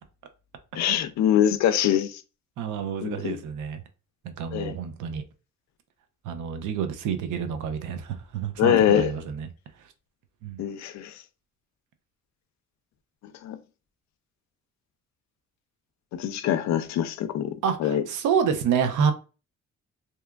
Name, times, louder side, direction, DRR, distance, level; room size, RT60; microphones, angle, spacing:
voice 1, 0.7-2.2 3.0-3.4 4.5-4.8 8.6-9.1 10.6-11.1 13.4-13.6 16.1-17.5 17.8-18.0, left 10 dB, 65° left, 0.4 m, -23 dB
voice 2, 2.6-3.8 4.2-5.2 6.2-9.5 10.4-10.6 17.6-19.1, right 7 dB, 80° right, 0.6 m, -28 dB
2.8 x 2.3 x 2.2 m
cardioid pair, 90°, 30 cm